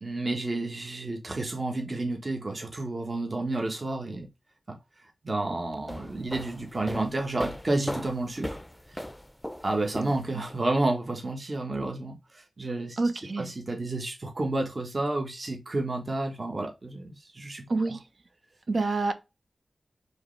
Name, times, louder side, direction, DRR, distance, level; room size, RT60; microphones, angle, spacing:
voice 1, 0.0-4.3 5.2-8.6 9.6-13.0 13.4-17.6, right 2 dB, 40° right, 1.3 m, -30 dB
sound 1, 5.7-10.6, equal, 10° left, 0.6 m, -38 dB
voice 2, 13.0-13.5 17.7-18.0 18.7-19.1, right 3 dB, 65° right, 0.9 m, -27 dB
4.9 x 3.2 x 3.3 m
wide cardioid pair, 70°, 0 cm